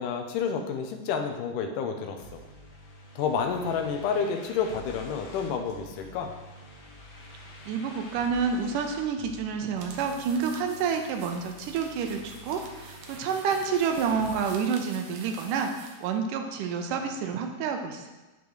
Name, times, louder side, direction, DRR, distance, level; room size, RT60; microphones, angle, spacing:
voice 1, 0.0-2.4 3.2-6.3, left 6 dB, 85° left, 5 dB, 2.3 m, -30 dB
sound 1, 2.2-14.4, left 1 dB, 65° left, 2.2 m, -48 dB
voice 2, 7.7-18.1, right 6 dB, 85° right, 5 dB, 2.3 m, -29 dB
sound 2, 9.7-16.1, right 5 dB, 70° right, 1.7 m, -48 dB
8.5 x 6.8 x 3.1 m, 1.1 s
omnidirectional pair, 3.7 m